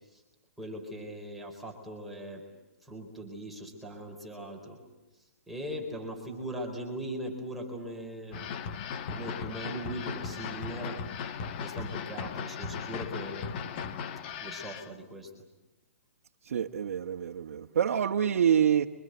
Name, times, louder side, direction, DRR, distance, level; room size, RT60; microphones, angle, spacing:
voice 1, 0.6-2.4 2.8-4.8 5.5-8.4 9.1-11.0 11.6-13.9 14.4-15.3, right 1 dB, ahead, -1 dB, 4.2 m, -40 dB
sound 1, 8.3-14.9, left 6 dB, 40° left, 1.4 m, -37 dB
voice 2, 16.5-18.9, right 8 dB, 75° right, 2 dB, 1.3 m, -26 dB
29.5 x 25.0 x 8.0 m, 1.0 s
hypercardioid pair, 150°, 8 cm